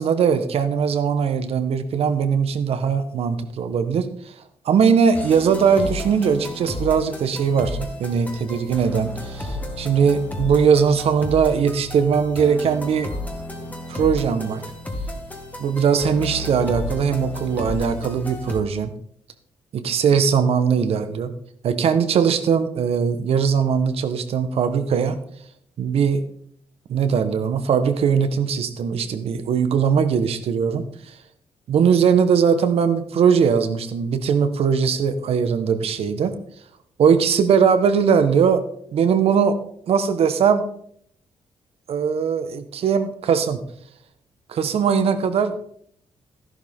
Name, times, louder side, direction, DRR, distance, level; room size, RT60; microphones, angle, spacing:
voice 1, 0.0-4.3 4.6-13.1 13.6-14.6 15.6-18.9 19.7-21.3 21.6-25.2 25.8-26.2 26.9-31.2 31.7-36.3 37.0-38.6 38.9-39.6 39.9-40.6 41.9-43.6 44.5-45.6, right 6 dB, 65° right, 10 dB, 1.2 m, -20 dB
sound 1, 5.1-18.6, left 1 dB, 15° left, 1.8 m, -32 dB
13.0 x 11.5 x 3.7 m, 0.66 s
cardioid pair, 130°, 11 cm